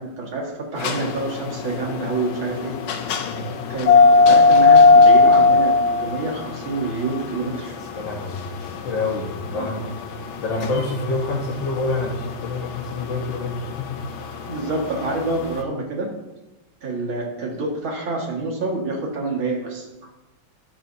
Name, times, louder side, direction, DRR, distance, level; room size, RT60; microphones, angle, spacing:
voice 1, 0.0-2.7 3.7-7.7 9.5-9.7 14.5-16.1 16.8-19.9, right 3 dB, 80° right, -2 dB, 2.6 m, -27 dB
sound 1, 0.8-15.5, left 3 dB, 85° left, 1.6 m, -18 dB
voice 2, 7.9-8.4 8.8-9.9 10.4-14.0, left 3 dB, 70° left, -3 dB, 1.8 m, -27 dB
12.0 x 6.8 x 2.7 m, 1.0 s
omnidirectional pair, 2.2 m